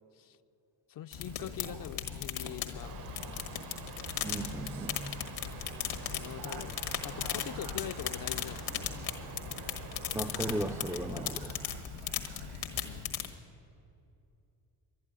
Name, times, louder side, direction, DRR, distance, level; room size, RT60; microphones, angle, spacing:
voice 1, 0.9-3.3 6.1-6.7 7.0-9.2 12.7-13.1, left 10 dB, 45° left, 0.5 m, -43 dB
sound 1, 1.1-13.3, left 9 dB, 80° left, 1.5 m, -38 dB
Speech, 1.1-13.0, right 5 dB, 80° right, 1.8 m, -50 dB
sound 2, 2.8-11.3, right 8 dB, 50° right, 0.8 m, -48 dB
voice 2, 4.2-5.2 10.1-11.5, right 1 dB, 5° right, 0.4 m, -36 dB
11.5 x 10.5 x 9.8 m
cardioid pair, 85°, 46 cm